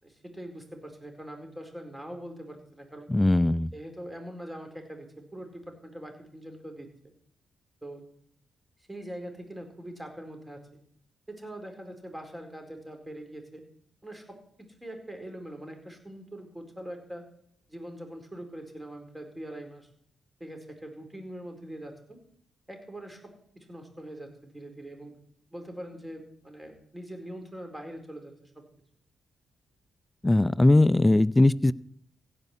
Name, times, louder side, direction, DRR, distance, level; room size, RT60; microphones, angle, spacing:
voice 1, 0.0-3.1 3.7-6.9 7.8-8.0 8.9-10.8 11.3-13.6 14.0-17.2 17.7-19.9 20.4-22.2 22.7-25.2 25.5-28.6, right 1 dB, 15° right, 4 dB, 4.3 m, -43 dB
voice 2, 3.1-3.7 30.2-31.7, left 2 dB, 20° left, 19 dB, 0.5 m, -20 dB
16.0 x 5.4 x 8.4 m, 0.65 s
hypercardioid pair, 45°, 0 cm